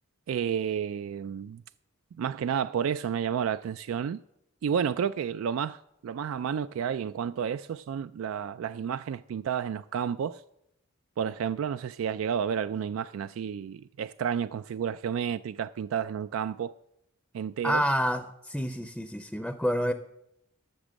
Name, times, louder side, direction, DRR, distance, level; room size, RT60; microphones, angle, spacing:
voice 1, 0.3-1.6 2.2-4.2 4.6-10.4 11.2-16.7 17.3-17.8, right 7 dB, 80° right, 0.3 m, -31 dB
voice 2, 17.6-19.9, equal, ahead, 0.5 m, -28 dB
13.5 x 6.1 x 7.5 m
head